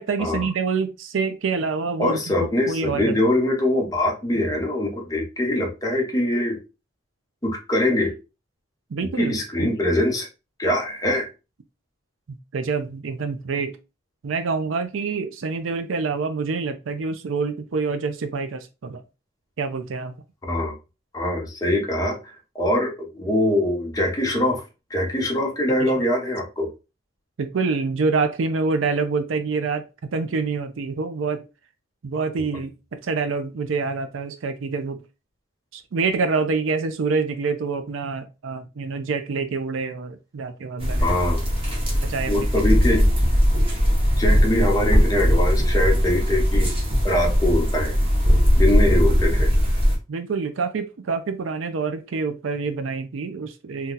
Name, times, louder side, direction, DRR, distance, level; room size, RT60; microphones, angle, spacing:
voice 1, 0.0-2.3 2.7-3.2 8.9-9.7 12.3-13.8 14.2-19.0 19.6-20.1 25.8-26.1 27.4-31.5 32.0-35.0 35.7-41.2 42.0-42.5 50.1-53.9, right 4 dB, 75° right, 0.5 m, -26 dB
voice 2, 2.0-6.6 7.4-8.1 9.2-10.3 10.6-11.3 20.5-20.8 21.1-24.6 24.9-26.7 41.0-41.4 42.3-43.1 44.2-46.7 47.0-47.9 48.5-49.5, left 1 dB, 20° left, 0.8 m, -23 dB
sound 1, 40.8-49.9, equal, 30° right, 1.0 m, -19 dB
2.7 x 2.2 x 3.7 m
head